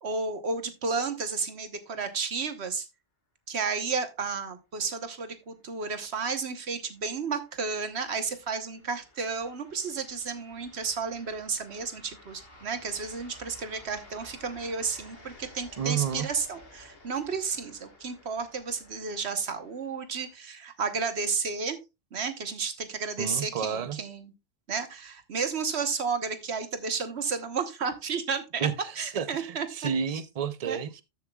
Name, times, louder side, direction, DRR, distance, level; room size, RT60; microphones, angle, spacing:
voice 1, 0.0-2.9 3.5-21.8 22.1-24.3 24.7-28.7 28.9-29.9 30.7-30.8, right 5 dB, 80° right, 1.4 m, -32 dB
sound 1, 5.5-20.3, left 1 dB, 65° left, 2.2 m, -54 dB
voice 2, 15.8-16.3 23.2-24.0 28.6-28.7 29.1-31.0, right 7 dB, 40° right, 0.7 m, -30 dB
13.5 x 7.4 x 2.3 m
omnidirectional pair, 1.1 m